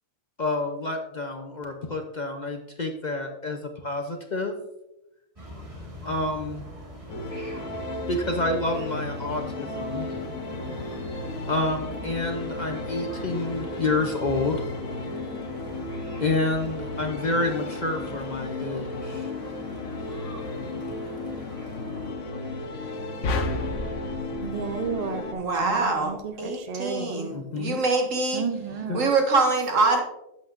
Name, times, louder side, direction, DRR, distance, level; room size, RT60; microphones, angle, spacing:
voice 1, 0.4-4.6 6.0-6.6 8.1-10.1 11.5-14.6 16.2-19.3 27.3-27.8 28.9-29.0, left 2 dB, 40° left, 4 dB, 0.7 m, -28 dB
sound 1, 5.4-22.1, equal, 25° right, 1.7 m, -42 dB
sound 2, 7.1-25.3, left 2 dB, 85° left, 1.5 m, -34 dB
sound 3, 23.2-25.6, left 2 dB, 65° left, 1.1 m, -31 dB
voice 2, 24.4-27.3 28.3-29.1, right 5 dB, 40° right, 7 dB, 0.6 m, -33 dB
voice 3, 25.4-28.4 28.9-30.0, right 3 dB, 70° right, 2 dB, 1.9 m, -24 dB
11.5 x 8.3 x 2.5 m, 0.91 s
omnidirectional pair, 1.4 m